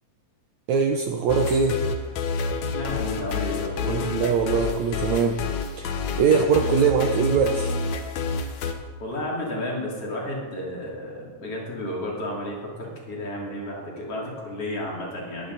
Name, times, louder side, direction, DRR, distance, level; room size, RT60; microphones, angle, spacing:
voice 1, 0.7-1.8 3.9-5.4 5.8-7.7, right 6 dB, 70° right, 3 dB, 1.8 m, -22 dB
sound 1, 1.3-8.7, left 4 dB, 65° left, 2.1 m, -29 dB
voice 2, 2.7-4.2 9.0-15.5, left 1 dB, 45° left, -3 dB, 3.7 m, -32 dB
20.0 x 10.0 x 4.0 m, 1.4 s
omnidirectional pair, 4.0 m